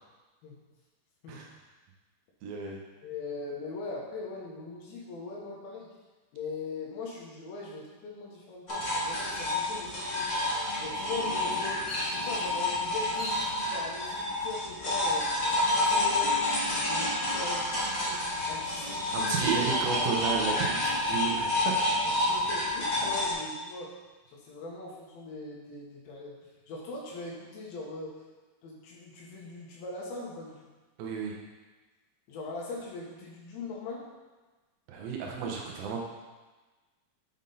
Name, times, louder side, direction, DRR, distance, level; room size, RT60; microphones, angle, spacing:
voice 1, 2.4-2.8 19.1-21.8 31.0-31.3 34.9-36.0, right 6 dB, 80° right, -1 dB, 2.6 m, -32 dB
voice 2, 3.0-5.9 6.3-10.3 10.8-15.3 15.6-16.4 16.7-19.5 22.3-23.9 24.3-26.4 26.7-28.1 28.6-30.5 32.3-34.1, left 3 dB, 90° left, -3 dB, 3.0 m, -41 dB
sound 1, 8.7-23.3, left 1 dB, 60° left, 0.8 m, -29 dB
Bird vocalization bird call bird song, 11.8-12.6 13.1-13.6 14.1-14.7 15.8-16.6 16.9-17.0 17.5-18.9, left 1 dB, 10° left, 0.6 m, -41 dB
7.1 x 5.4 x 3.8 m, 1.3 s
omnidirectional pair, 4.1 m